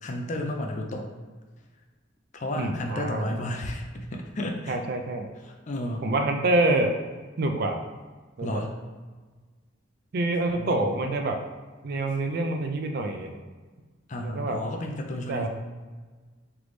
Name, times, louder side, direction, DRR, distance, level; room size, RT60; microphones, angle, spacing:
voice 1, 0.0-1.1 2.3-4.8 5.5-6.0 8.4-8.7 10.6-10.9 14.1-15.5, left 1 dB, 40° left, 2 dB, 0.5 m, -32 dB
voice 2, 2.6-3.3 4.7-5.3 6.0-6.9 7.4-7.8 8.4-8.6 10.1-11.4 11.8-13.3 14.2-14.6 15.3-15.5, right 2 dB, 50° right, 4 dB, 0.4 m, -26 dB
3.4 x 3.2 x 3.9 m, 1.4 s
head